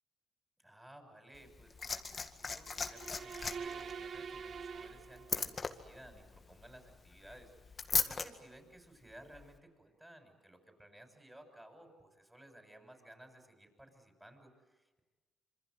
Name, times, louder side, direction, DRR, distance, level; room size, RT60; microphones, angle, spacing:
voice 1, 0.6-15.0, right 1 dB, 10° right, 4 dB, 6.8 m, -57 dB
Liquid, 1.3-8.3 9.3-9.5, left 4 dB, 35° left, 1.9 m, -39 dB
sound 1, 2.7-5.7, right 6 dB, 55° right, 1.4 m, -45 dB
27.0 x 25.5 x 8.1 m, 1.2 s
cardioid pair, 90°, 0 cm